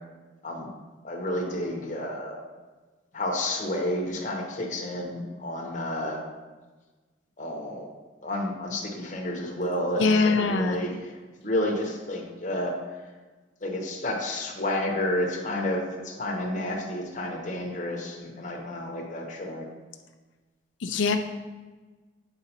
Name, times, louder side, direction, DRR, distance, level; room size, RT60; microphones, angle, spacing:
voice 1, 1.0-2.4 3.1-6.2 7.4-7.9 8.2-10.0 10.3-12.8 13.6-19.6, left 1 dB, 40° left, -1 dB, 0.9 m, -30 dB
voice 2, 10.0-10.8 20.8-21.2, left 4 dB, 80° left, 6 dB, 0.5 m, -22 dB
7.8 x 5.0 x 2.8 m, 1.3 s
head